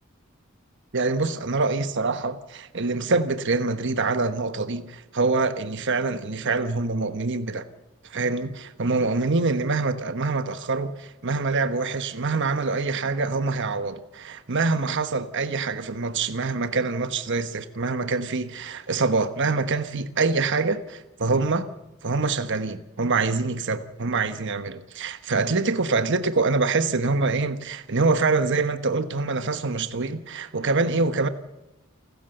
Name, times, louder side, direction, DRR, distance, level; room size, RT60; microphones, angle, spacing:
voice 1, 0.9-7.6 8.1-21.7 22.0-31.3, right 3 dB, 60° right, 1.1 m, -25 dB
28.5 x 13.5 x 7.9 m
head